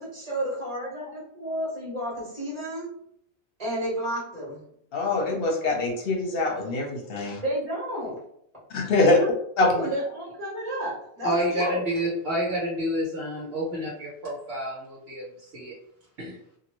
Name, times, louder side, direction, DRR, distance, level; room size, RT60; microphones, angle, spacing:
voice 1, 0.0-2.9 3.6-4.7 7.4-8.2 9.0-9.3 9.6-11.8, right 1 dB, 35° right, -7 dB, 1.4 m, -31 dB
voice 2, 4.9-7.4 8.7-9.2 9.6-9.8, left 2 dB, 60° left, 0 dB, 1.0 m, -23 dB
voice 3, 11.2-15.7 16.2-16.4, equal, 65° right, -6 dB, 1.2 m, -29 dB
2.7 x 2.6 x 3.0 m, 0.69 s
omnidirectional pair, 1.1 m